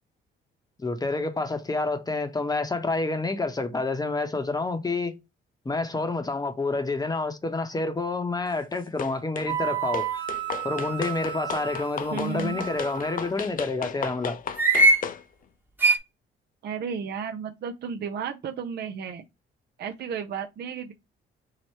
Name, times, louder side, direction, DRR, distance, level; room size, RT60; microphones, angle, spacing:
voice 1, 0.8-5.2 5.6-10.1 10.6-14.4, left 3 dB, 20° left, 0.8 m, -28 dB
sound 1, 9.0-9.5 9.9-15.2, left 7 dB, 45° left, 0.5 m, -35 dB
sound 2, 9.5-13.3 14.6-15.1 15.8-16.0, right 3 dB, 10° right, 1.0 m, -25 dB
voice 2, 12.1-12.6 16.6-19.2 19.8-20.9, right 6 dB, 55° right, 0.5 m, -33 dB
4.7 x 2.1 x 4.3 m
cardioid pair, 90°, 20 cm